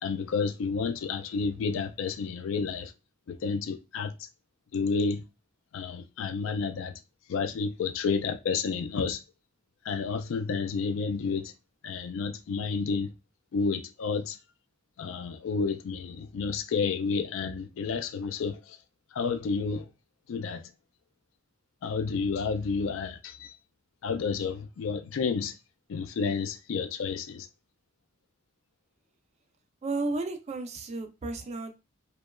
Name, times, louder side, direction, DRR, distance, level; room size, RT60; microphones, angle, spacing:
voice 1, 0.0-2.9 3.3-4.2 4.7-5.2 5.7-7.0 7.3-9.2 9.8-11.5 11.8-13.1 13.5-14.4 15.0-18.8 19.1-19.9 20.3-20.6 21.8-23.5 24.0-25.6 25.9-27.5, left 5 dB, 70° left, 0.3 m, -30 dB
voice 2, 29.8-31.8, right 3 dB, 35° right, 0.4 m, -33 dB
2.8 x 2.2 x 2.2 m
head